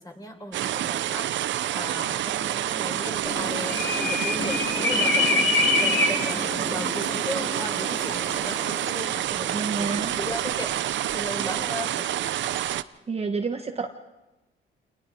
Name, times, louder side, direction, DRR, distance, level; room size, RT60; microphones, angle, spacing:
voice 1, 0.0-5.5 5.8-12.3, left 1 dB, 20° left, 2 dB, 4.5 m, -37 dB
sound 1, 0.5-12.8, right 12 dB, 70° right, 0.6 m, -28 dB
sound 2, 3.2-8.9, left 3 dB, 75° left, 5.7 m, -26 dB
voice 2, 9.1-10.1 13.1-13.9, right 4 dB, 30° right, 5 dB, 1.2 m, -30 dB
27.5 x 20.0 x 4.9 m, 1.0 s
cardioid pair, 90°, 20 cm